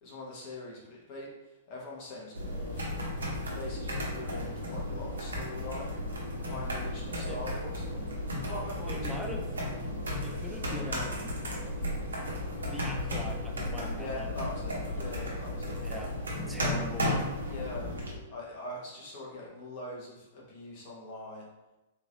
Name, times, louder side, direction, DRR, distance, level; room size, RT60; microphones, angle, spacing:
voice 1, 0.0-1.3 1.7-3.0 3.4-5.9 6.4-7.8 8.4-9.3 14.0-15.8 16.6-16.9 17.4-17.9 18.3-21.5, left 2 dB, 45° left, -4 dB, 1.3 m, -42 dB
sound 1, 2.3-18.1, left 1 dB, 75° right, 0.8 m, -34 dB
voice 2, 8.9-9.5 10.2-11.4 12.7-14.3 15.8-16.2 16.5-17.1 17.5-18.0, left 1 dB, ahead, 1 dB, 0.4 m, -41 dB
3.7 x 2.9 x 2.7 m, 1.0 s
figure-of-eight pair, 110°, 0 cm